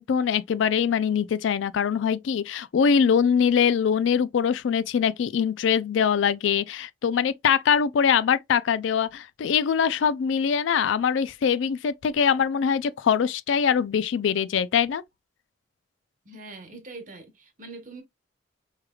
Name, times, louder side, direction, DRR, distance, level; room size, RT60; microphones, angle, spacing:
voice 1, 0.0-15.0, left 7 dB, 75° left, 0.3 m, -23 dB
voice 2, 16.2-18.0, right 3 dB, 40° right, 1.2 m, -43 dB
4.7 x 3.2 x 2.3 m
head